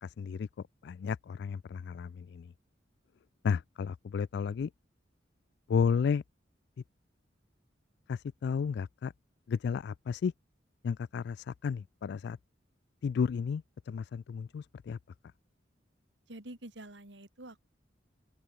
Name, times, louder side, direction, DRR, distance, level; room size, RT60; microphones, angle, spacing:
voice 1, 0.0-0.5 0.8-2.5 3.4-4.7 5.7-6.2 8.1-9.1 9.5-10.3 10.8-12.4 13.0-15.0, left 6 dB, 60° left, 0.3 m, -32 dB
voice 2, 16.3-17.7, right 1 dB, 70° right, 3.3 m, -47 dB
open air
head